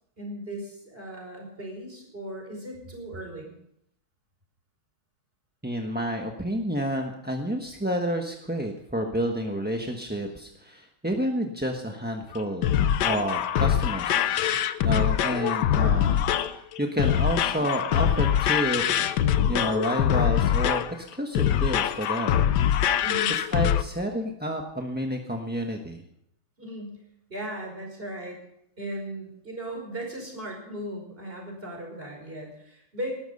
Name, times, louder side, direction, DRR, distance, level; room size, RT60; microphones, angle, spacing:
voice 1, 0.2-3.5 23.0-23.3 26.6-27.0 27.3-28.4 28.8-33.2, right 1 dB, 25° right, 1 dB, 5.4 m, -37 dB
voice 2, 5.6-14.3 14.8-19.1 19.4-22.4 23.5-26.0, equal, 5° right, 2 dB, 0.9 m, -30 dB
sound 1, 12.3-23.8, left 10 dB, 65° left, 1.2 m, -24 dB
19.5 x 12.5 x 5.5 m, 0.73 s
omnidirectional pair, 2.3 m